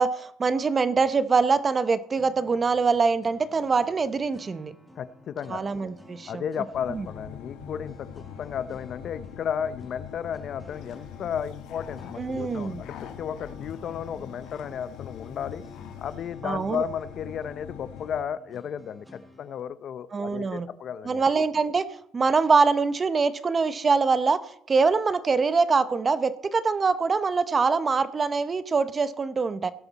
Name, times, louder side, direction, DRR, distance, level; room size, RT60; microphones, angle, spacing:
voice 1, 0.0-4.7 5.5-6.4 6.9-7.0 12.2-12.8 16.4-16.8 20.1-20.7 21.0-29.7, right 4 dB, 25° right, 14 dB, 0.8 m, -24 dB
sound 1, 2.1-19.6, left 1 dB, 5° right, 2.3 m, -51 dB
voice 2, 5.0-5.6 6.3-15.6 16.0-21.2, left 8 dB, 45° left, 15 dB, 0.6 m, -34 dB
sound 2, 6.7-18.2, left 8 dB, 90° left, 1.7 m, -43 dB
sound 3, 10.7-16.3, left 8 dB, 65° left, 1.8 m, -51 dB
17.0 x 11.5 x 4.1 m, 0.70 s
cardioid pair, 130°, 0 cm